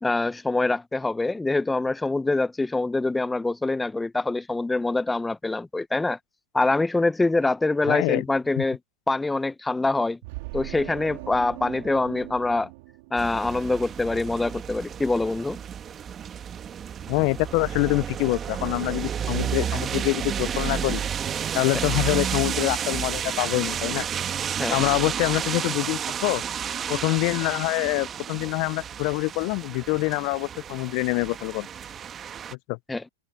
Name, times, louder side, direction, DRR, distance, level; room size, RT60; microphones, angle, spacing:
voice 1, 0.0-6.2 6.5-8.8 9.1-10.2 10.5-12.7 13.1-15.6 24.6-24.8 32.9-33.0, left 2 dB, 5° left, 0.7 m, -25 dB
voice 2, 7.9-8.2 8.6-8.7 17.1-21.0 21.5-24.1 24.7-26.4 26.9-31.7 32.7-32.8, left 30 dB, 45° left, 0.3 m, -25 dB
sound 1, 10.2-13.7, right 24 dB, 55° right, 3.0 m, -40 dB
sound 2, 13.2-32.5, right 8 dB, 25° right, 1.3 m, -31 dB
hypercardioid pair, 135°, 0 cm